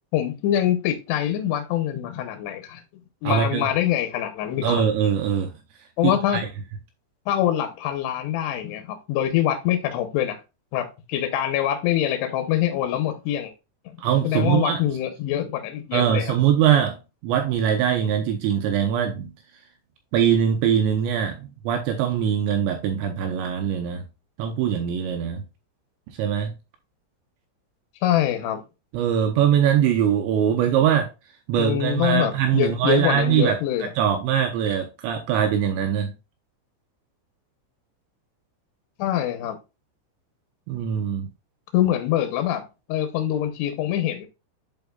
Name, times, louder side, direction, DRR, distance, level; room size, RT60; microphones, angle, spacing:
voice 1, 0.1-2.8 3.2-4.8 6.0-6.4 7.3-10.4 10.7-13.5 13.9-14.0 14.2-16.4 28.0-28.6 31.6-33.9 39.0-39.6 41.7-42.6 42.9-44.3, left 11 dB, 75° left, 2.6 m, -24 dB
voice 2, 3.2-3.7 4.6-5.5 6.0-6.4 14.0-14.8 15.9-17.0 17.2-19.3 20.1-24.0 24.4-25.4 26.2-26.5 28.9-31.1 31.5-36.1 40.7-41.3, right 9 dB, 80° right, 2.7 m, -22 dB
10.5 x 4.4 x 2.3 m
omnidirectional pair, 5.8 m